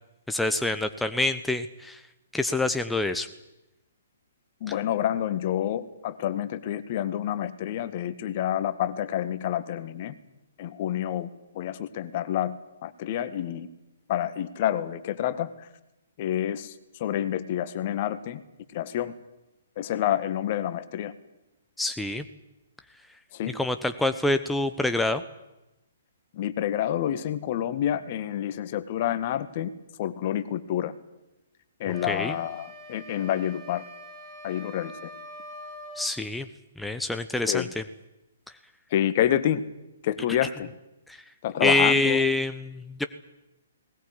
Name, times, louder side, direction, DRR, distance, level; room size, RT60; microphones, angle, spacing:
voice 1, 0.3-2.0 2.3-3.3 4.7-4.8 21.8-22.2 23.5-25.2 32.1-32.4 36.0-36.5 36.8-37.8 41.1-41.2 41.6-43.0, left 2 dB, 5° left, 8 dB, 1.0 m, -26 dB
voice 2, 4.6-10.2 10.6-11.3 11.5-13.7 14.1-15.7 16.2-16.7 17.0-18.4 18.7-19.1 19.8-21.1 23.3-23.6 26.3-29.7 30.0-30.9 31.8-33.8 34.4-35.1 37.5-37.7 38.9-39.6 40.0-40.7 41.4-42.3, left 11 dB, 40° left, 12 dB, 1.8 m, -28 dB
sound 1, 31.9-36.1, left 1 dB, 20° right, 5.5 m, -44 dB
20.0 x 19.5 x 9.8 m, 0.95 s
figure-of-eight pair, 125°, 0 cm